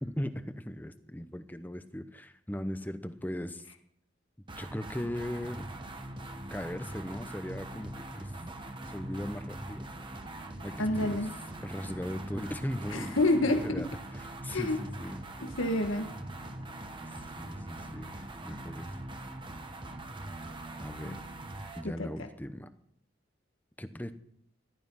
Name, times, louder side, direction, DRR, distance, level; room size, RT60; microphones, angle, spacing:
voice 1, 0.0-3.6 4.6-5.7 6.5-8.3 8.9-9.9 10.6-11.3 11.6-13.2 13.6-15.2 17.0-18.9 20.8-21.2 21.7-22.7 23.8-24.1, equal, 10° left, 10 dB, 0.8 m, -38 dB
sound 1, 4.5-21.9, right 1 dB, 25° right, 1.3 m, -42 dB
voice 2, 10.8-11.3 12.9-13.8 14.5-14.8 15.4-16.1 21.0-21.2 22.0-22.1, left 2 dB, 80° left, 5 dB, 1.6 m, -28 dB
15.5 x 12.0 x 5.7 m, 0.69 s
head